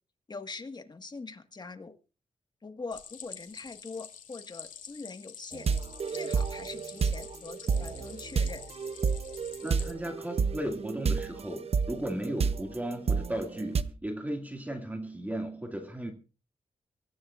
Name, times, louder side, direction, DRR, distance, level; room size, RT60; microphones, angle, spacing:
voice 1, 0.3-1.9 2.6-5.7 6.1-8.6, left 3 dB, 30° left, 1.6 m, -43 dB
Stream, 2.9-9.9, left 8 dB, 90° left, 2.3 m, -48 dB
sound 1, 5.5-13.8, right 5 dB, 50° right, 0.8 m, -30 dB
voice 2, 9.6-16.1, right 1 dB, 10° right, 2.2 m, -35 dB
24.5 x 14.0 x 2.5 m
cardioid pair, 95°, 13 cm